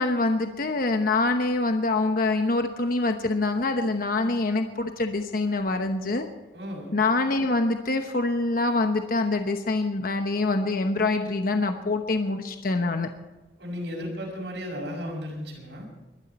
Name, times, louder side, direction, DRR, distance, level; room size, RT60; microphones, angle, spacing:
voice 1, 0.0-6.2 6.9-13.1, left 2 dB, 55° left, 6 dB, 1.0 m, -25 dB
voice 2, 6.5-7.0 13.6-15.9, equal, 80° right, 0 dB, 5.9 m, -34 dB
22.0 x 12.0 x 4.3 m, 1.1 s
head